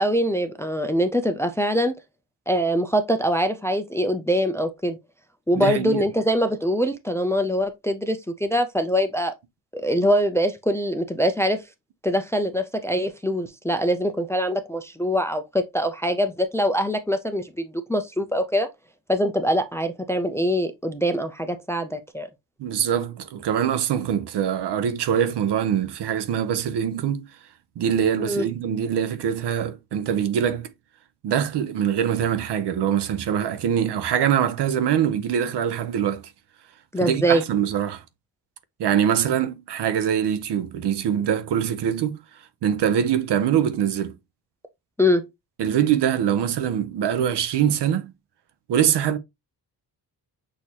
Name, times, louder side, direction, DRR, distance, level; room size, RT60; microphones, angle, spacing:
voice 1, 0.0-1.9 2.5-5.0 5.5-9.3 9.7-11.6 12.0-18.7 19.1-22.3 28.2-28.5 36.9-37.4 45.0-45.2, equal, 5° left, 0.3 m, -23 dB
voice 2, 5.6-6.1 22.6-27.3 27.8-30.7 31.2-36.3 37.0-38.0 38.8-44.2 45.6-48.1 48.7-49.2, right 9 dB, 80° right, 0.7 m, -23 dB
6.3 x 2.8 x 2.8 m
wide cardioid pair, 135°, 41 cm